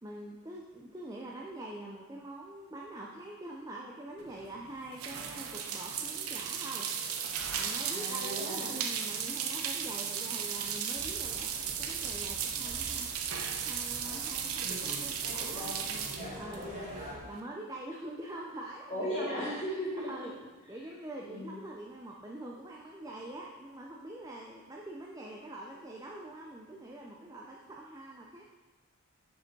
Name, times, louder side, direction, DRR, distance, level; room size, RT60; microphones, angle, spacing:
voice 1, 0.0-6.9 7.5-13.1 13.6-15.7 16.4-16.7 17.2-19.6 20.0-20.3 20.7-28.4, right 1 dB, 15° right, -2 dB, 0.5 m, -44 dB
sound 1, 4.2-17.4, right 7 dB, 85° right, 0.7 m, -36 dB
voice 2, 7.9-8.8 15.2-16.9 18.9-20.1 20.6-20.8 21.2-21.6, equal, 30° left, -6 dB, 2.3 m, -38 dB
sound 2, 10.9-17.2, equal, 30° right, 1.6 m, -46 dB
6.9 x 5.1 x 4.6 m, 1.2 s
head